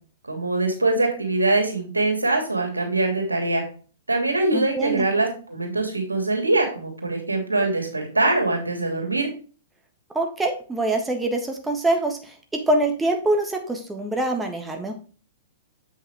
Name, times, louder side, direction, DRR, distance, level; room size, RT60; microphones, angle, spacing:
voice 1, 0.3-3.6 4.1-9.3, right 2 dB, 85° right, 2 dB, 2.8 m, -23 dB
voice 2, 4.5-5.0 10.1-14.9, right 2 dB, 10° right, 3 dB, 1.5 m, -24 dB
7.9 x 6.5 x 3.5 m, 0.39 s
figure-of-eight pair, 110°, 0 cm